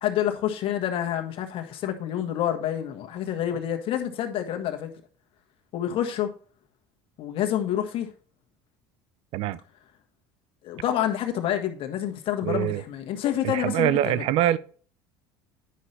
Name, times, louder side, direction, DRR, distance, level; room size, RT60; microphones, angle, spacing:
voice 1, 0.0-4.9 5.7-6.3 7.2-8.1 10.6-14.2, left 11 dB, 55° left, 1.5 m, -28 dB
voice 2, 12.4-12.8 13.5-14.6, right 12 dB, 65° right, 0.6 m, -24 dB
10.0 x 5.7 x 3.3 m
supercardioid pair, 95°, 11 cm